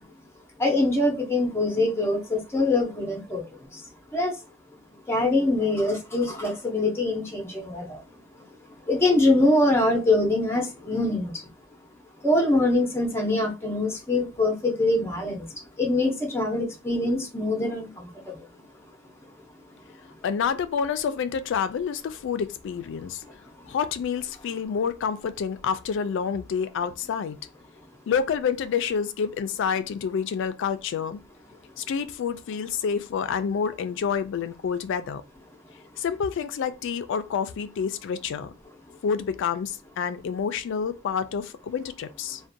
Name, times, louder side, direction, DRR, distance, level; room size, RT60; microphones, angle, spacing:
voice 1, 0.6-3.4 3.7-3.8 4.1-4.3 5.1-8.0 8.9-11.5 12.2-15.5 15.8-18.5, left 2 dB, 10° left, 0.6 m, -24 dB
voice 2, 20.2-23.2 23.7-27.4 28.1-31.2 31.8-35.2 36.0-38.5 39.0-42.4, left 6 dB, 60° left, 0.3 m, -28 dB
2.5 x 2.1 x 2.6 m
head